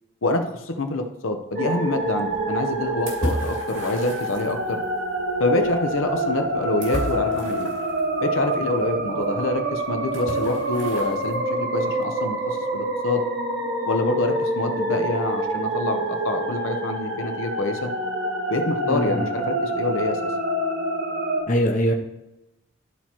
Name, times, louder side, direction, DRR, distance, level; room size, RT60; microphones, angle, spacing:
voice 1, 0.2-4.8 5.4-7.7 8.2-13.2 13.8-17.9 18.5-20.3, left 2 dB, 85° left, 5 dB, 0.9 m, -26 dB
sound 1, 1.5-21.4, right 1 dB, 55° right, 1.6 m, -27 dB
sound 2, 1.8-11.4, right 1 dB, 80° right, 2.5 m, -36 dB
voice 2, 18.8-19.3 21.5-21.9, equal, 40° left, 2 dB, 0.8 m, -22 dB
12.5 x 4.3 x 3.0 m, 0.98 s
head